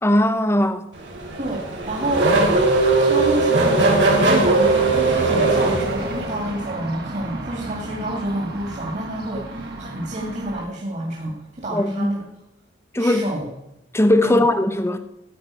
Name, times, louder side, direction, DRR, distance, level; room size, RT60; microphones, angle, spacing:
voice 1, 0.0-0.8 11.7-12.1 12.9-13.3 13.9-15.0, left 1 dB, 15° left, 0.9 m, -19 dB
Race car auto racing / Accelerating revving vroom, 1.0-6.5, right 3 dB, 85° right, 3.7 m, -19 dB
voice 2, 1.4-2.3 3.0-12.2 13.0-13.5 14.2-14.4, right 1 dB, 40° right, 2.4 m, -28 dB
sound 1, 4.1-10.6, right 2 dB, 60° right, 2.1 m, -33 dB
14.5 x 5.6 x 9.7 m
head